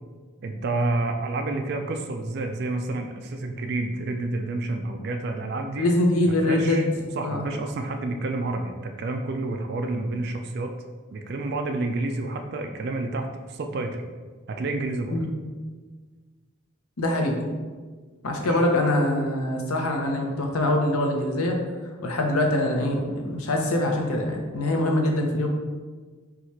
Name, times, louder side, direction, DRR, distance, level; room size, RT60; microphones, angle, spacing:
voice 1, 0.4-5.9 6.4-6.9 7.1-10.8 11.1-14.0 14.5-15.2 18.4-18.6, right 2 dB, 50° right, 5 dB, 0.3 m, -29 dB
voice 2, 5.8-6.9 7.2-7.4 15.1-15.3 17.0-17.4 18.2-21.6 22.0-25.5, left 1 dB, 85° left, 2 dB, 0.8 m, -23 dB
4.7 x 2.4 x 4.1 m, 1.4 s
head